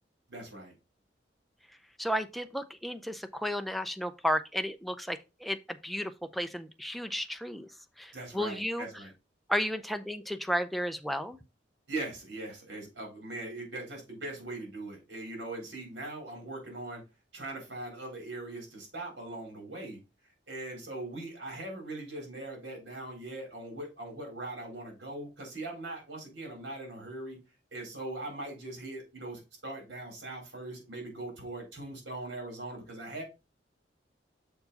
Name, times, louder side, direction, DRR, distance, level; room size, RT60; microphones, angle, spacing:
voice 1, 0.3-0.7 8.1-9.1 11.9-17.0 17.3-20.0 20.5-27.4 27.7-33.2, right 2 dB, 75° right, 3.9 m, -40 dB
voice 2, 2.0-7.7 8.0-8.9 9.5-11.4, equal, ahead, 0.5 m, -33 dB
6.6 x 4.6 x 4.1 m
head